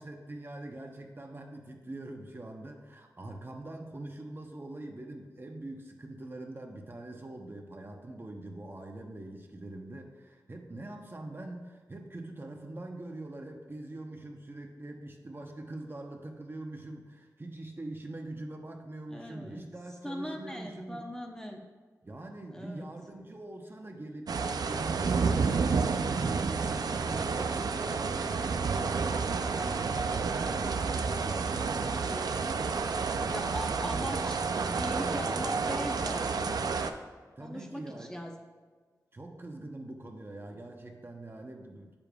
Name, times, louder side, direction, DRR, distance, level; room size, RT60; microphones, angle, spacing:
voice 1, 0.0-21.1 22.0-33.3 33.6-36.0 37.4-38.1 39.1-41.9, right 2 dB, 35° right, 2 dB, 0.8 m, -43 dB
voice 2, 19.1-19.7 20.0-21.6 22.5-22.9 33.2-34.4 34.7-36.6 37.4-38.3, equal, 10° left, 1 dB, 0.8 m, -40 dB
sound 1, 24.3-36.9, right 5 dB, 80° right, 0.4 m, -30 dB
8.4 x 6.9 x 2.3 m, 1.5 s
wide cardioid pair, 70°, 7 cm